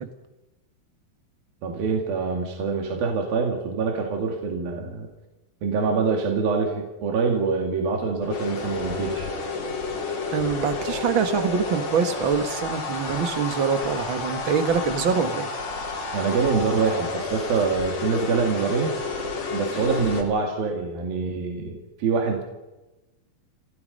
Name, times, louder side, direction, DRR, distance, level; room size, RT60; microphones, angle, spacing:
voice 1, 1.6-5.1 5.6-9.3 16.1-18.9 19.5-22.4, right 5 dB, 75° right, 1 dB, 4.2 m, -25 dB
sound 1, 8.2-20.2, left 3 dB, 50° left, 3.9 m, -31 dB
voice 2, 10.3-15.5, right 6 dB, 45° right, 8 dB, 1.8 m, -24 dB
30.0 x 16.5 x 5.4 m, 1.0 s
omnidirectional pair, 4.2 m